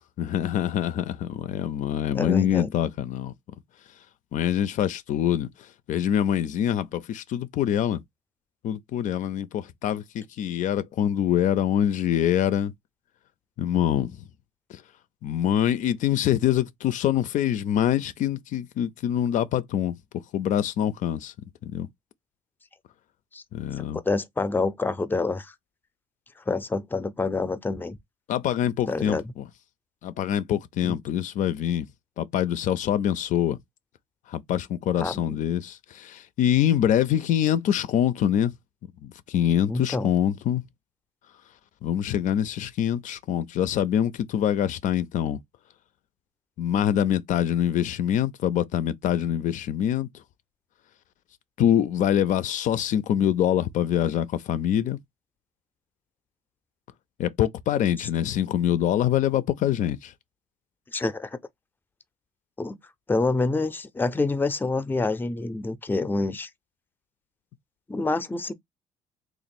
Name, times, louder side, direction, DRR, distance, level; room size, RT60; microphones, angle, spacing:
voice 1, 0.0-3.3 4.3-5.5 5.9-8.0 8.6-12.7 13.6-14.2 14.7-14.8 15.2-20.0 20.3-21.3 21.6-21.9 23.5-24.0 28.3-29.4 30.0-31.9 32.2-33.6 34.3-38.5 39.0-40.6 41.8-45.4 46.6-50.1 51.6-55.0 57.2-60.1, left 10 dB, 65° left, 0.5 m, -25 dB
voice 2, 2.1-2.7 23.3-23.4 23.8-25.5 26.5-28.0 28.9-29.3 30.8-31.0 35.0-35.4 39.7-40.1 60.9-61.4 62.6-62.8 63.1-66.5 67.9-68.5, left 3 dB, 15° left, 0.5 m, -27 dB
3.1 x 2.4 x 4.1 m
cardioid pair, 90°, 14 cm